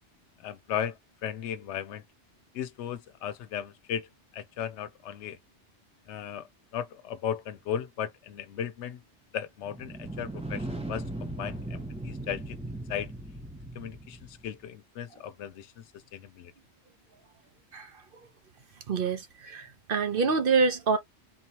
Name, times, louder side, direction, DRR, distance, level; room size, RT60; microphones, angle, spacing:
voice 1, 0.4-2.0 2.5-4.1 4.3-5.4 6.1-6.5 6.7-9.0 9.3-12.6 12.9-13.1 13.7-15.8 16.1-16.5, left 9 dB, 80° left, 0.9 m, -36 dB
sound 1, 9.6-14.5, right 1 dB, 5° right, 0.8 m, -38 dB
voice 2, 18.9-21.0, right 4 dB, 55° right, 0.9 m, -26 dB
4.0 x 2.9 x 2.8 m
omnidirectional pair, 1.2 m